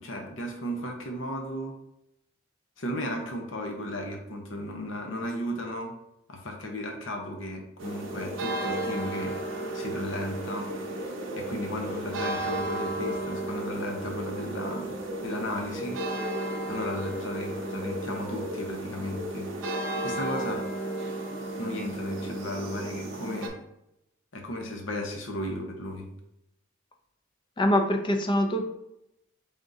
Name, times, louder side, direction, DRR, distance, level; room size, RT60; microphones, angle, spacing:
voice 1, 0.0-1.8 2.8-5.9 6.3-9.4 9.7-10.7 11.4-14.9 15.2-16.0 16.7-19.5 20.0-20.6 21.6-23.6 24.3-26.1, equal, 70° left, 2 dB, 0.8 m, -35 dB
sound 1, 7.8-23.5, right 1 dB, 70° right, 0.7 m, -33 dB
voice 2, 27.6-28.6, left 1 dB, 25° left, 4 dB, 0.4 m, -24 dB
3.7 x 3.5 x 2.6 m, 0.82 s
head